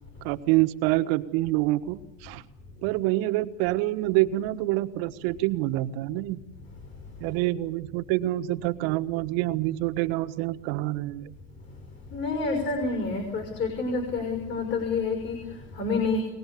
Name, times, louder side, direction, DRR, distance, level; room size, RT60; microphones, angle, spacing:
voice 1, 0.2-2.4 2.8-6.4 7.2-11.4, right 17 dB, 65° right, 9 dB, 1.4 m, -26 dB
voice 2, 12.1-16.2, left 3 dB, 35° left, 4 dB, 6.2 m, -28 dB
24.0 x 19.0 x 8.5 m, 0.99 s
supercardioid pair, 150°, 31 cm